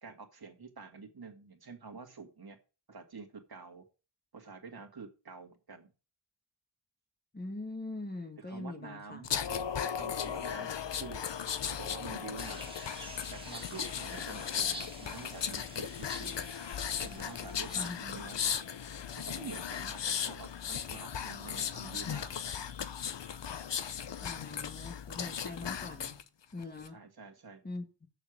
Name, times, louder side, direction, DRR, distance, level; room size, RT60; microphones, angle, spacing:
voice 1, 0.0-2.6 2.9-3.8 4.3-5.9 8.4-11.2 11.7-12.8 13.3-16.4 17.0-18.4 19.1-22.6 26.9-27.6, right 4 dB, 60° right, 2.1 m, -48 dB
voice 2, 7.3-9.3 17.7-18.0 24.2-26.2 26.5-27.0 27.6-28.1, left 2 dB, 25° left, 1.8 m, -42 dB
sound 1, 9.2-26.2 26.6-26.9, left 8 dB, 90° left, 0.9 m, -37 dB
sound 2, 12.4-18.0, right 1 dB, 15° right, 2.1 m, -49 dB
7.1 x 6.6 x 7.8 m
wide cardioid pair, 100°, 42 cm